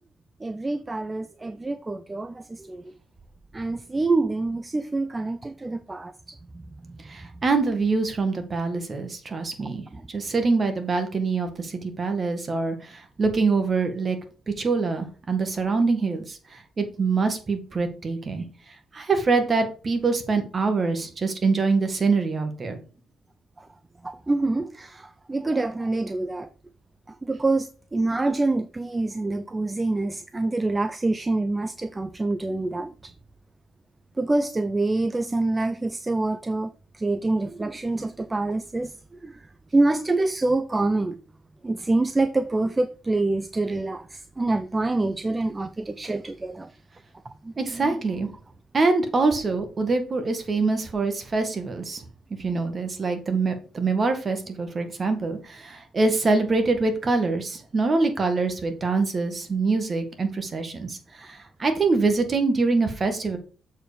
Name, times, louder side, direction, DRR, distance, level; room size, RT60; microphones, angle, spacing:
voice 1, 0.4-2.8 3.5-6.6 9.9-10.0 23.6-23.7 24.0-26.5 27.2-33.1 34.2-38.9 39.2-39.4 39.7-41.2 41.6-46.7 47.4-47.9, right 2 dB, 20° right, 0.5 m, -26 dB
voice 2, 7.0-14.2 14.5-18.4 18.9-22.8 47.6-48.3 48.7-52.0 52.4-63.4, right 3 dB, 35° right, 1.7 m, -24 dB
7.5 x 4.8 x 5.1 m
cardioid pair, 90°, 0 cm